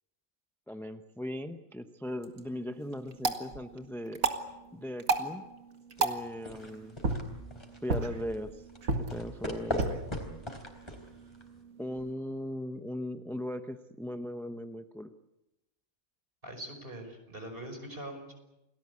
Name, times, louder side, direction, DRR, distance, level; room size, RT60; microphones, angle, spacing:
voice 1, 0.7-4.2 4.7-5.4 6.0-7.0 7.8-8.7 9.0-10.0 11.8-15.1, left 1 dB, ahead, 8 dB, 0.7 m, -38 dB
sound 1, 2.0-12.1, right 4 dB, 75° right, 2.2 m, -36 dB
sound 2, 6.0-11.6, left 1 dB, 20° left, 4.0 m, -40 dB
voice 2, 16.4-18.3, right 1 dB, 40° right, 5 dB, 5.7 m, -42 dB
29.0 x 19.0 x 8.4 m, 0.97 s
omnidirectional pair, 1.4 m